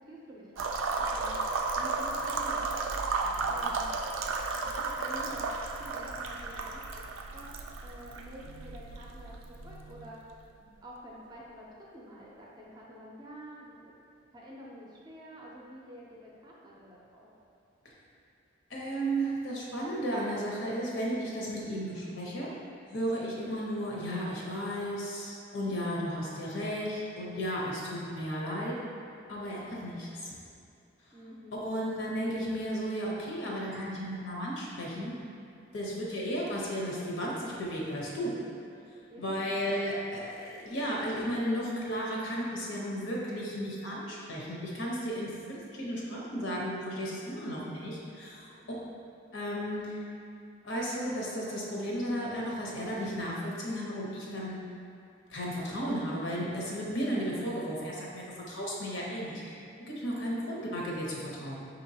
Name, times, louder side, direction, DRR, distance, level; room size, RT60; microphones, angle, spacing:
voice 1, 0.1-1.4 1.8-3.0 3.5-3.9 4.5-7.0 7.3-7.5 7.8-10.2 10.6-11.7 11.9-13.9 14.3-17.3 31.1-31.6 36.0-36.2 39.1-39.4 48.5-48.8 60.4-60.7, equal, 20° right, -5 dB, 0.5 m, -48 dB
sound 1, 0.6-10.3, right 3 dB, 80° right, 0.3 m, -34 dB
voice 2, 18.7-22.5 22.9-28.7 29.3-30.3 31.6-35.1 35.7-38.3 39.2-48.5 49.3-50.0 50.6-54.6 55.3-59.6 59.9-61.6, equal, 70° left, -4 dB, 0.8 m, -34 dB
5.4 x 2.9 x 2.7 m, 2.5 s
head